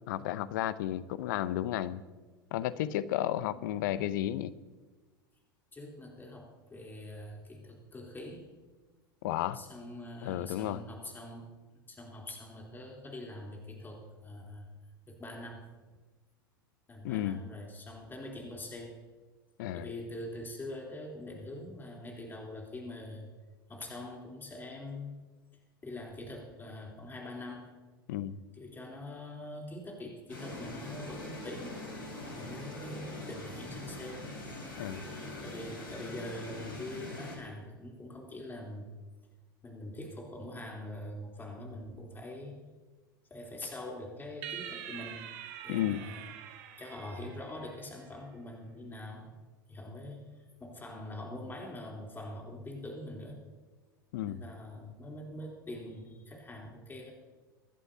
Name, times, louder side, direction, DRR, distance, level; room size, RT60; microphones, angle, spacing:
voice 1, 0.1-2.0 2.5-4.5 9.2-9.6 10.2-10.8 17.0-17.4 19.6-19.9 28.1-28.3 34.8-35.0 45.7-46.0 54.1-54.4, left 12 dB, 60° left, 16 dB, 0.7 m, -32 dB
voice 2, 5.7-8.5 9.5-11.5 11.9-14.7 15.1-15.7 16.9-19.0 19.7-23.3 23.7-25.1 25.8-27.7 28.5-31.8 32.4-34.3 35.4-38.9 39.6-42.6 43.3-45.2 45.6-46.3 46.8-49.3 49.7-53.4 54.3-57.1, left 1 dB, 15° left, -1 dB, 3.5 m, -44 dB
sound 1, 30.3-37.4, left 2 dB, 80° left, 4.8 m, -43 dB
sound 2, 44.4-48.0, right 10 dB, 55° right, 1.6 m, -45 dB
25.0 x 11.0 x 2.8 m, 1.3 s
figure-of-eight pair, 85°, 12 cm